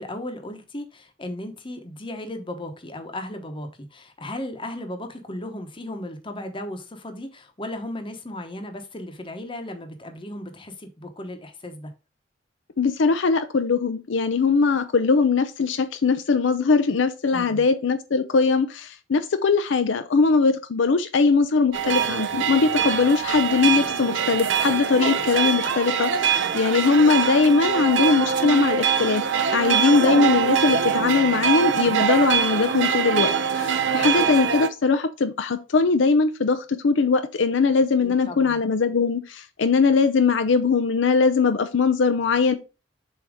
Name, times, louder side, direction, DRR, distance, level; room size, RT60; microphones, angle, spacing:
voice 1, 0.0-11.9 17.3-17.6 38.0-38.6, left 1 dB, 25° left, 1.0 m, -36 dB
voice 2, 12.8-29.2 29.5-33.3 33.5-42.5, left 4 dB, 75° left, 0.5 m, -21 dB
sound 1, 21.7-34.7, right 7 dB, 70° right, 0.6 m, -23 dB
7.1 x 2.9 x 4.9 m
head